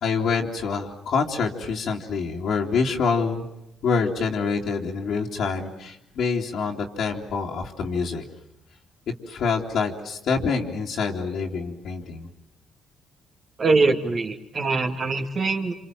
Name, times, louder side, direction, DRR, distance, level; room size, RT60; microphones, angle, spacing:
voice 1, 0.0-3.5 3.8-8.2 9.3-12.3, left 5 dB, 70° left, -2 dB, 2.9 m, -26 dB
voice 2, 13.6-15.7, right 3 dB, 45° right, 3 dB, 2.6 m, -23 dB
28.0 x 26.5 x 7.7 m, 0.80 s
cardioid pair, 90°, 0 cm